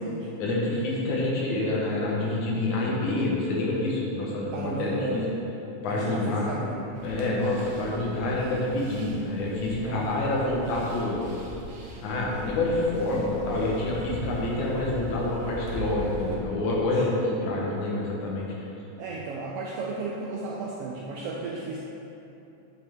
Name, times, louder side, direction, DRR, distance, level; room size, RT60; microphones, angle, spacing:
voice 1, 0.4-5.2 5.8-6.5 7.0-11.2 12.0-18.5, left 2 dB, 85° left, -4 dB, 2.6 m, -27 dB
voice 2, 4.5-5.3 5.9-6.8 9.8-10.2 17.1-17.2 19.0-21.8, right 3 dB, 80° right, -3 dB, 1.4 m, -34 dB
sound 1, 6.9-16.4, right 1 dB, 65° right, 2.0 m, -40 dB
8.6 x 5.7 x 3.5 m, 2.9 s
omnidirectional pair, 3.3 m